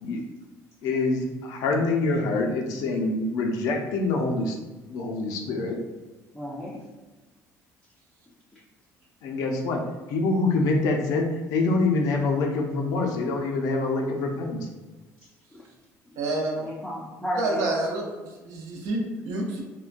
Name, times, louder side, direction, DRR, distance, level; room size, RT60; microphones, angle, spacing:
voice 1, 0.8-4.6 4.9-5.8 9.2-9.8 10.1-14.7, left 3 dB, 75° left, 2 dB, 0.5 m, -25 dB
voice 2, 6.3-6.9 8.5-8.6 15.2-15.7 16.1-17.8, left 1 dB, 5° left, -7 dB, 0.4 m, -35 dB
voice 3, 16.2-16.6 17.4-19.6, right 2 dB, 70° right, -1 dB, 0.7 m, -28 dB
3.7 x 2.2 x 2.5 m, 1.2 s
cardioid pair, 155°, 6 cm